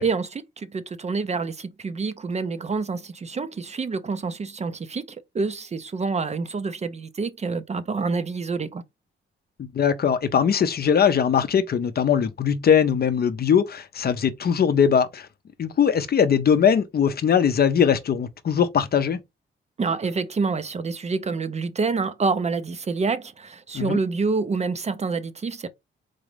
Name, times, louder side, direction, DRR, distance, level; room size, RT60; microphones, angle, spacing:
voice 1, 0.0-8.8 19.8-25.7, right 4 dB, 30° right, 0.5 m, -27 dB
voice 2, 9.6-15.3 15.6-19.2 23.7-24.0, left 7 dB, 50° left, 0.5 m, -21 dB
4.0 x 2.4 x 3.2 m
cardioid pair, 80°, 21 cm